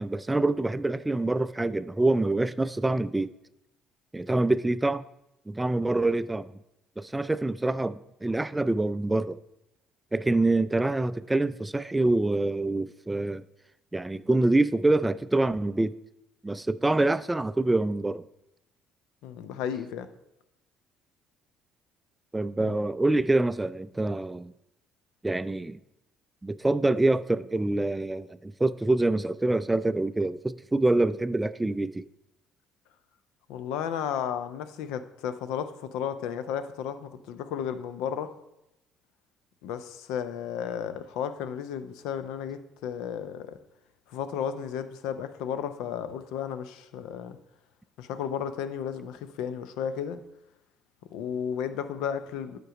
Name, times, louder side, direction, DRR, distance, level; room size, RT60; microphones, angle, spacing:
voice 1, 0.0-3.3 4.1-5.1 5.5-6.5 7.0-9.4 10.1-13.4 13.9-15.9 16.4-18.2 22.3-24.5 25.2-25.8 26.4-32.1, right 2 dB, 15° right, 0.3 m, -26 dB
voice 2, 19.2-20.1 22.6-22.7 33.5-38.4 39.6-43.6 44.1-47.4 48.0-50.2 51.1-52.6, left 8 dB, 70° left, 0.5 m, -33 dB
9.0 x 5.2 x 4.8 m
hypercardioid pair, 55°, 0 cm